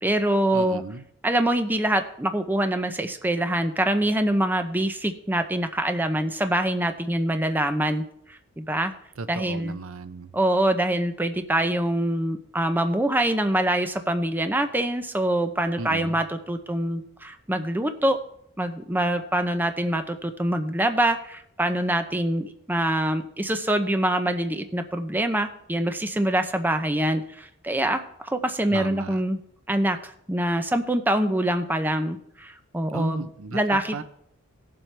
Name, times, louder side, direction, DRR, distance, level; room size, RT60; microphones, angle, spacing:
voice 1, 0.0-0.8 1.2-8.9 9.3-9.8 10.3-18.2 18.6-29.4 29.7-33.2 33.5-34.0, right 1 dB, 10° right, 7 dB, 0.6 m, -25 dB
voice 2, 0.5-1.0 9.2-10.3 15.8-16.2 28.7-29.2 32.9-34.0, right 4 dB, 70° right, 12 dB, 0.7 m, -35 dB
18.5 x 7.4 x 3.3 m, 0.67 s
head